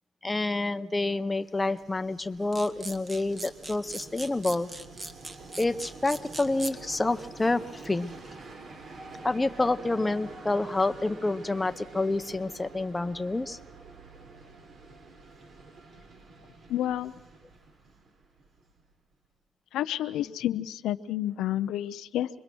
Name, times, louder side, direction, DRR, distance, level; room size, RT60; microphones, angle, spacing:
voice 1, 0.2-4.7 5.6-8.1 9.2-13.6, left 2 dB, 15° left, 9 dB, 1.0 m, -28 dB
Train, 1.2-19.0, right 3 dB, 60° right, 3.8 m, -48 dB
sound 1, 2.5-6.7, right 2 dB, 30° right, 1.8 m, -39 dB
voice 2, 16.7-17.1 19.7-22.3, left 12 dB, 85° left, 9 dB, 0.7 m, -30 dB
26.0 x 22.0 x 6.3 m, 1.0 s
cardioid pair, 90°, 0 cm